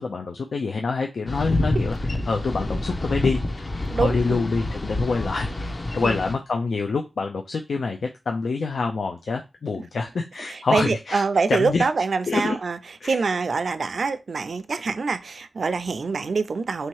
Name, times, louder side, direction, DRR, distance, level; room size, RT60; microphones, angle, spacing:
voice 1, 0.0-2.0 2.3-3.7 4.0-11.2 11.5-11.9 12.3-12.6 13.0-13.3, left 4 dB, 85° left, 0.4 m, -26 dB
Boat Water vehicle, 1.3-6.3, left 1 dB, 35° left, 0.6 m, -27 dB
voice 2, 3.9-4.4 6.0-6.2 10.5-12.8 13.0-16.9, right 4 dB, 70° right, 0.4 m, -25 dB
3.1 x 2.8 x 4.6 m
wide cardioid pair, 115°, 0 cm